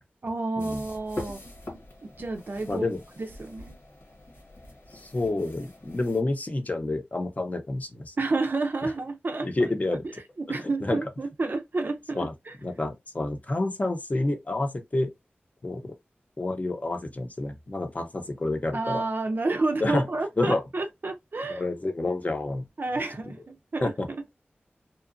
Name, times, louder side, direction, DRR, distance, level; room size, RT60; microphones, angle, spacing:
voice 1, 0.2-1.4 2.0-2.8 3.2-3.8 8.2-9.5 10.4-12.6 18.7-21.6 22.8-23.9, right 3 dB, 55° right, 0.4 m, -30 dB
sound 1, 0.6-6.2, left 1 dB, 80° left, 1.2 m, -43 dB
voice 2, 2.7-3.0 4.9-8.1 8.8-8.9 9.4-10.0 10.8-11.0 12.2-12.3 12.6-15.1 15.6-15.9 16.4-19.0 19.8-20.1 20.4-20.6 21.5-22.7 23.8-24.1, left 2 dB, 40° left, 0.7 m, -29 dB
2.8 x 2.2 x 2.5 m
wide cardioid pair, 55°, 4 cm